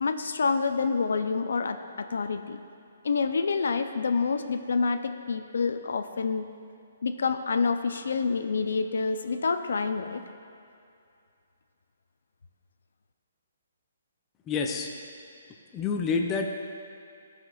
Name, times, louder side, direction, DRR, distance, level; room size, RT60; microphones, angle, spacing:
voice 1, 0.0-2.6 3.0-6.5 7.0-10.2, left 4 dB, 80° left, 8 dB, 0.4 m, -27 dB
voice 2, 14.5-14.9 15.7-16.5, left 4 dB, 15° left, 2 dB, 0.4 m, -28 dB
12.5 x 5.9 x 2.3 m, 2.5 s
hypercardioid pair, 165°, 0 cm